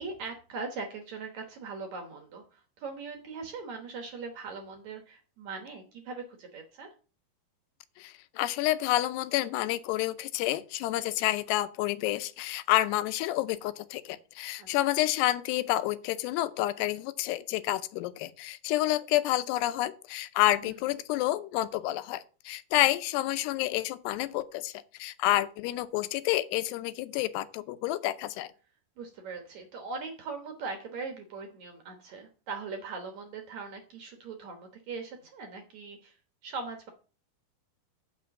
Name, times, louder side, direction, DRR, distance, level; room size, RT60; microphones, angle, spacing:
voice 1, 0.0-6.9 14.6-14.7 20.6-20.8 29.0-36.2 36.4-36.9, right 4 dB, 60° right, 2.0 m, -40 dB
voice 2, 8.0-28.5, left 15 dB, 90° left, 2.8 m, -29 dB
7.5 x 6.2 x 7.2 m
omnidirectional pair, 4.7 m